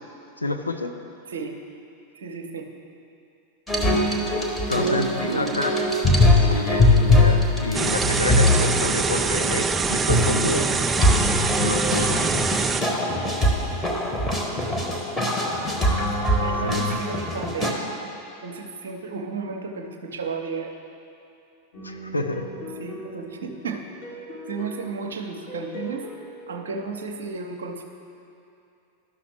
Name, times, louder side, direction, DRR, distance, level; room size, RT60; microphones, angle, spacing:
voice 1, 0.4-0.9 4.7-5.8 6.4-10.7 11.6-12.2 16.2-16.3 16.6-17.0 21.8-22.5, left 2 dB, 80° left, 5 dB, 0.5 m, -28 dB
voice 2, 2.1-2.7 4.7-5.6 16.4-17.8 18.4-20.8 22.8-23.8 24.5-26.1 26.5-27.8, right 4 dB, 65° right, 3 dB, 0.7 m, -33 dB
sound 1, 3.7-8.7 10.1-17.7, left 1 dB, 10° left, 1.0 m, -22 dB
sound 2, 7.7-12.8, right 4 dB, 15° right, 0.3 m, -24 dB
sound 3, 21.7-27.0, equal, 50° left, 1.6 m, -40 dB
12.0 x 5.8 x 3.3 m, 2.7 s
figure-of-eight pair, 90°, 0 cm